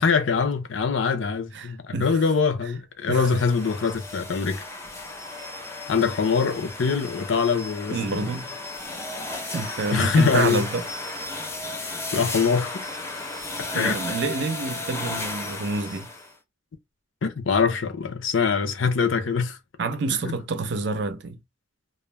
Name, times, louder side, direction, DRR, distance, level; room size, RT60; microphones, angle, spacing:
voice 1, 0.0-4.6 5.9-8.3 9.9-10.7 12.1-12.9 13.7-14.0 17.2-19.6 20.2-20.3, left 5 dB, 85° left, 0.6 m, -23 dB
voice 2, 1.5-2.2 3.1-3.4 7.9-8.5 9.5-10.8 13.7-16.1 19.8-21.4, right 3 dB, 65° right, 0.5 m, -28 dB
sound 1, 3.1-16.3, left 2 dB, 15° left, 0.5 m, -34 dB
2.4 x 2.0 x 3.1 m
head